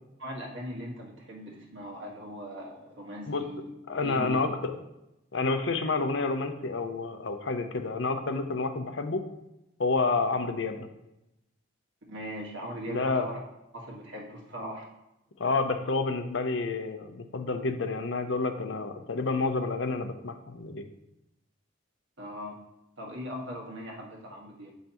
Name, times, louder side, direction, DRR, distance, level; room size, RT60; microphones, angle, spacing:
voice 1, 0.2-3.7 4.0-4.5 12.1-13.4 13.7-14.9 22.2-22.6 23.0-24.7, equal, 65° right, -2 dB, 1.6 m, -39 dB
voice 2, 3.9-4.7 5.3-9.2 9.8-10.9 12.9-13.3 15.4-20.8, left 3 dB, 65° left, 7 dB, 0.6 m, -29 dB
7.2 x 5.5 x 2.9 m, 0.89 s
head